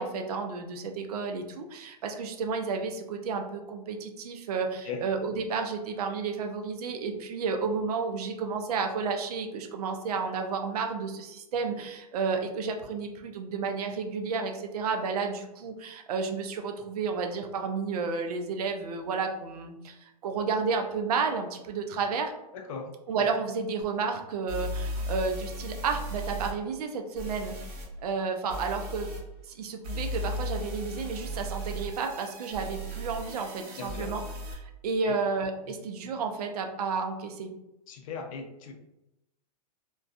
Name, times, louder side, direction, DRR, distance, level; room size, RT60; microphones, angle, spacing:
voice 1, 0.0-22.3 23.1-27.6 28.0-29.1 29.4-34.2 34.5-37.5, right 5 dB, 70° right, 4 dB, 0.5 m, -31 dB
voice 2, 22.5-22.9 33.8-34.1 35.0-35.2 35.6-35.7 37.9-38.7, left 5 dB, 60° left, 4 dB, 0.5 m, -38 dB
sound 1, 23.8-23.9 24.5-26.5 27.2-27.9 28.5-29.2 29.8-34.5, equal, 40° right, 0.9 m, -36 dB
2.3 x 2.2 x 2.5 m, 0.91 s
hypercardioid pair, 135°, 20 cm